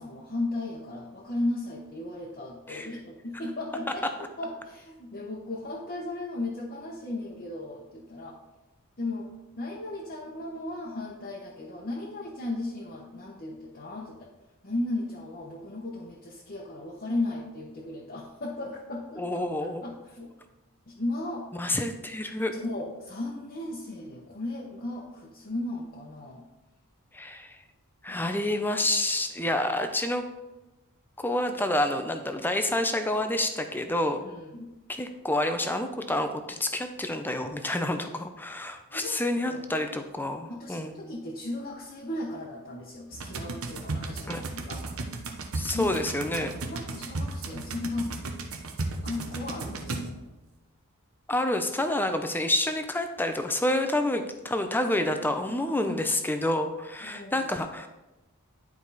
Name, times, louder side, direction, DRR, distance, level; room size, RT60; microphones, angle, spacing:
voice 1, 0.0-8.4 9.0-9.3 9.6-14.3 14.6-19.5 19.8-20.3 20.9-21.5 22.5-26.4 28.1-28.6 34.2-34.7 38.9-39.6 40.5-44.8 45.7-46.0 46.6-48.2 49.0-50.2 55.5-55.6 55.9-56.0 57.0-57.5, left 2 dB, 40° left, -3 dB, 1.0 m, -36 dB
voice 2, 19.2-19.8 21.5-22.5 27.1-27.6 28.0-30.3 31.2-34.2 34.9-41.0 44.3-44.4 45.5-46.5 51.3-57.9, left 1 dB, 10° left, 7 dB, 0.6 m, -28 dB
sound 1, 43.1-50.4, right 2 dB, 70° right, 1.0 m, -35 dB
10.5 x 4.7 x 4.1 m, 1.0 s
head